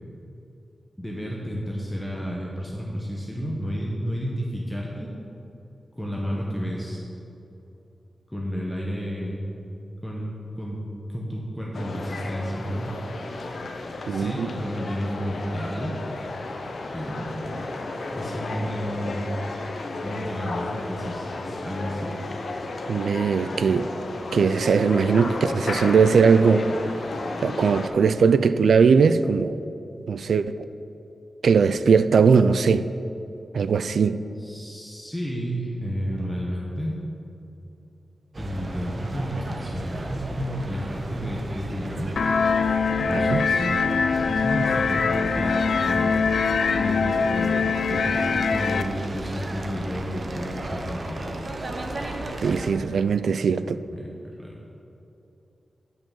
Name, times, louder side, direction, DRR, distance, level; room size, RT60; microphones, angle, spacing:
voice 1, 1.0-5.1 6.0-7.0 8.3-9.4 10.0-10.8 11.1-13.0 14.1-16.0 16.9-17.6 18.1-19.3 20.0-22.2 34.4-37.0 38.4-42.1 43.0-46.2 46.7-51.3 53.9-54.1 54.4-54.5, equal, 5° left, -4 dB, 0.9 m, -31 dB
sound 1, 11.7-27.9, left 2 dB, 60° left, 0.7 m, -33 dB
voice 2, 14.1-14.5 22.9-23.9 24.3-26.7 27.4-29.6 30.1-30.6 31.4-32.9 33.5-34.2 43.1-43.5 52.4-53.8, right 5 dB, 90° right, 13 dB, 0.3 m, -20 dB
sound 2, 38.3-52.7, right 1 dB, 35° right, 0.7 m, -35 dB
sound 3, 42.2-48.8, left 5 dB, 85° left, 0.4 m, -23 dB
8.7 x 5.5 x 7.2 m, 2.9 s
wide cardioid pair, 180°, 0 cm